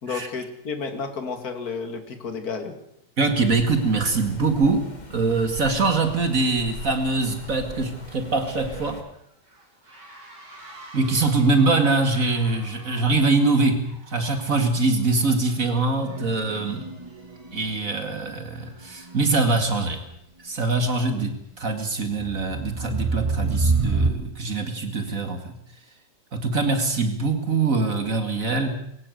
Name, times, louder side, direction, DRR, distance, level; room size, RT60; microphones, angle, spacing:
voice 1, 0.0-2.7, left 5 dB, 60° left, 7 dB, 2.8 m, -31 dB
voice 2, 3.2-4.8 5.1-9.0 10.9-16.9 17.5-20.0 20.4-25.5 26.3-28.8, right 3 dB, 50° right, 7 dB, 2.5 m, -23 dB
sound 1, 3.3-9.0, left 2 dB, 25° left, 2.5 m, -41 dB
sound 2, 4.2-20.1, right 1 dB, 90° right, 7.2 m, -51 dB
sound 3, 16.0-17.9 19.1-19.2 22.2-24.1, right 3 dB, 20° right, 1.5 m, -26 dB
22.0 x 17.0 x 8.0 m, 0.74 s
omnidirectional pair, 1.8 m